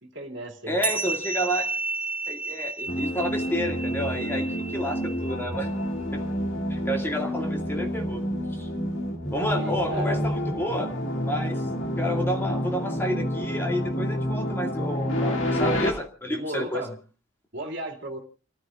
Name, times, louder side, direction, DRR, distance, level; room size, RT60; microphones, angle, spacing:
voice 1, 0.0-0.8 9.5-10.3 16.3-17.0 17.5-18.2, right 1 dB, 60° right, 1 dB, 2.6 m, -35 dB
voice 2, 0.7-1.7 2.3-5.7 6.1-6.2 6.7-8.2 8.5-8.7 9.3-10.9 11.3-11.6 12.0-16.8, equal, 10° left, 2 dB, 2.2 m, -30 dB
sound 1, 0.8-5.7, right 3 dB, 5° right, 0.8 m, -32 dB
sound 2, 2.9-15.9, equal, 75° left, 2.8 m, -28 dB
30.0 x 15.0 x 2.5 m, 0.36 s
head